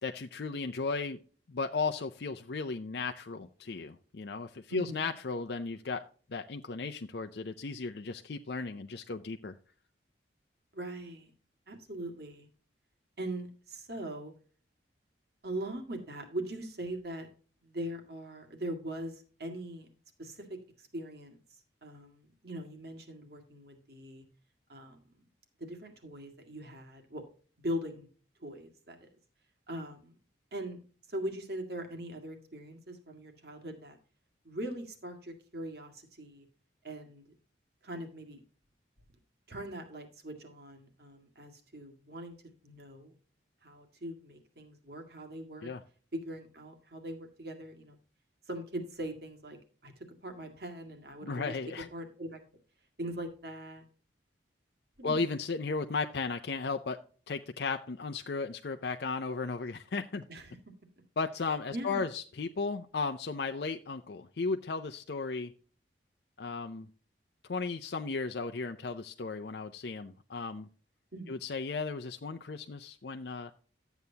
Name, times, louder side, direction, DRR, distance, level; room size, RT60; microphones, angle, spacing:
voice 1, 0.0-1.2 1.5-6.0 6.3-9.5 45.6-45.8 51.2-51.9 55.0-57.0 57.3-60.2 61.2-65.5 66.4-66.9 67.4-70.7 71.3-73.5, left 4 dB, 60° left, 6 dB, 0.5 m, -35 dB
voice 2, 4.7-5.1 10.7-11.3 11.7-12.5 13.2-14.3 15.4-17.3 17.6-19.9 20.2-20.5 20.8-21.4 21.8-24.3 24.7-25.0 25.6-27.2 27.6-28.1 28.4-29.1 29.7-30.1 30.5-30.8 31.1-34.0 34.4-36.5 36.8-37.3 37.8-38.4 39.5-42.4 42.6-43.1 43.6-45.7 46.1-48.0 48.5-49.6 49.8-51.5 51.9-52.4 53.0-53.8 55.0-55.2 60.3-60.6 61.7-62.1 71.1-71.4, right 1 dB, 55° right, 4 dB, 2.0 m, -41 dB
12.5 x 8.1 x 2.8 m, 0.40 s
head